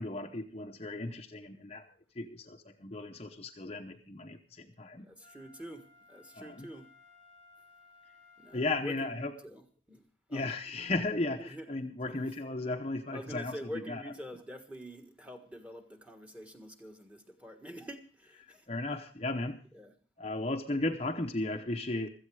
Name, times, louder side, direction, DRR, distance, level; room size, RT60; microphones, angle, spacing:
voice 1, 0.0-1.9 2.2-5.1 6.3-6.7 8.5-9.3 10.3-13.6 13.9-14.0 18.7-19.6 20.2-22.1, left 2 dB, 30° left, 0.8 m, -35 dB
voice 2, 5.0-6.9 8.4-10.5 11.3-11.7 12.0-12.2 13.1-18.7 19.7-19.9, equal, 5° right, 1.6 m, -46 dB
Wind instrument woodwind instrument, 5.2-9.5 10.0-10.1, left 3 dB, 40° right, 4.3 m, -60 dB
16.0 x 14.0 x 4.8 m
head